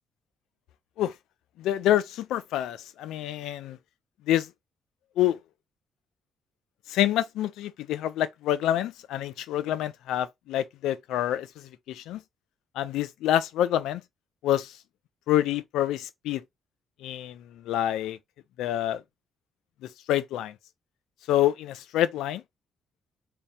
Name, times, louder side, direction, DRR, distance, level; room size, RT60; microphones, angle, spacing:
voice 1, 1.6-3.8 4.3-4.5 5.2-5.4 6.9-12.2 12.8-14.0 14.4-14.7 15.3-16.4 17.0-18.2 18.6-19.0 20.1-20.5 21.3-22.4, left 12 dB, 90° left, 0.5 m, -27 dB
3.5 x 2.7 x 4.2 m
cardioid pair, 90°, 0 cm